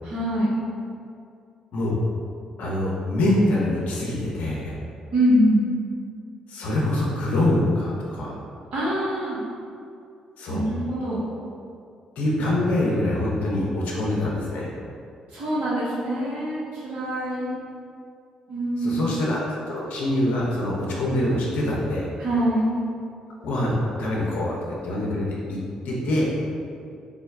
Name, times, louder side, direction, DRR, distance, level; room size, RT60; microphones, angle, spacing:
voice 1, 0.0-0.6 5.1-5.6 8.7-9.4 10.5-11.2 15.3-17.5 18.5-19.1 22.2-22.7, equal, 70° right, -8 dB, 1.1 m, -24 dB
voice 2, 2.6-4.8 6.5-8.4 10.4-10.7 12.2-14.7 18.8-22.1 23.4-25.6 25.8-26.3, left 1 dB, 65° left, -4 dB, 0.6 m, -24 dB
3.6 x 2.2 x 3.3 m, 2.4 s
hypercardioid pair, 45°, 3 cm